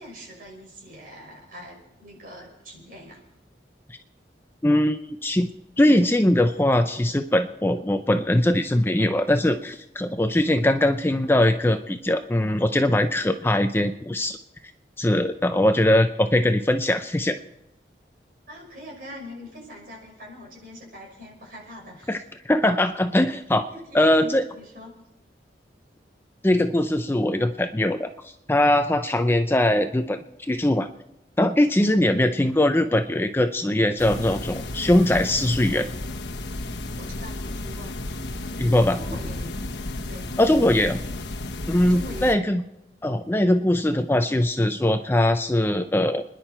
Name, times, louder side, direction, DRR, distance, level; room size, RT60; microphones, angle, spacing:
voice 1, 0.0-3.2 18.5-22.2 23.3-23.4 23.7-24.9 37.0-37.9 38.9-39.5 40.1-40.3 41.9-42.4, equal, 50° right, -1 dB, 6.0 m, -42 dB
voice 2, 4.6-5.5 5.8-14.4 15.0-17.3 22.1-22.2 22.5-23.7 23.9-24.4 26.4-28.1 28.5-30.9 31.4-35.9 38.6-39.0 40.4-41.0 41.7-42.6 43.0-46.2, left 1 dB, 10° left, 8 dB, 0.5 m, -21 dB
sound 1, 34.0-42.3, left 2 dB, 80° left, 1.2 m, -33 dB
29.5 x 10.5 x 4.4 m, 0.89 s
head